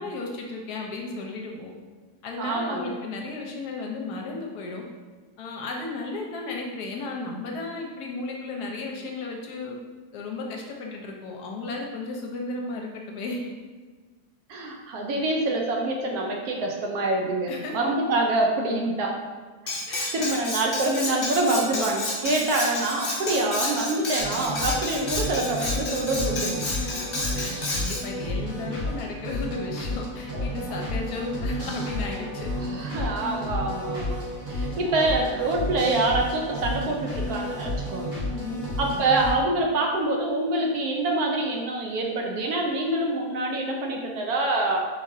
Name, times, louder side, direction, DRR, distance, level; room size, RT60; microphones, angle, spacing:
voice 1, 0.0-1.7 2.2-4.8 5.4-9.8 10.1-13.4 17.5-17.9 19.9-20.4 26.8-32.5 38.3-38.6, left 3 dB, 75° left, 0 dB, 1.1 m, -34 dB
voice 2, 2.4-3.0 14.5-19.2 19.6-19.7 20.1-26.6 30.3-30.5 32.6-34.2 34.5-38.2 38.8-44.9, right 2 dB, 70° right, 1 dB, 1.0 m, -26 dB
Cutlery silverware, 19.7-28.0, left 2 dB, 45° left, 0.7 m, -31 dB
sound 1, 24.2-39.3, left 1 dB, 55° right, 1.8 m, -31 dB
3.9 x 3.8 x 2.5 m, 1.4 s
omnidirectional pair, 1.8 m